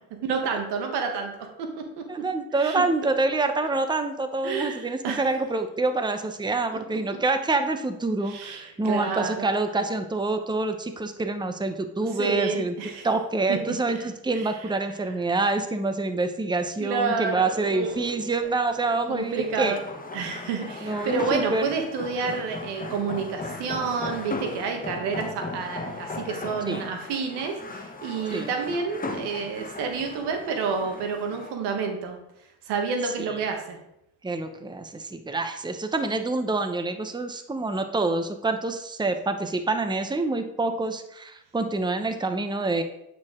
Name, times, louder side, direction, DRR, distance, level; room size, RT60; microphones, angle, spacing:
voice 1, 0.2-2.0 2.6-2.8 4.4-5.2 6.7-6.8 8.2-9.5 12.1-13.1 13.5-13.6 14.3-14.5 16.8-18.1 19.1-19.8 20.1-32.2 32.7-33.8, right 5 dB, 85° right, 4 dB, 1.3 m, -29 dB
voice 2, 2.1-12.7 13.0-19.7 20.8-21.7 26.7-26.8 28.3-28.5 34.2-42.8, right 3 dB, 10° right, 8 dB, 0.8 m, -27 dB
sound 1, 17.8-31.6, left 3 dB, 20° left, 1.0 m, -37 dB
8.6 x 4.5 x 3.7 m, 0.82 s
supercardioid pair, 65°, 40 cm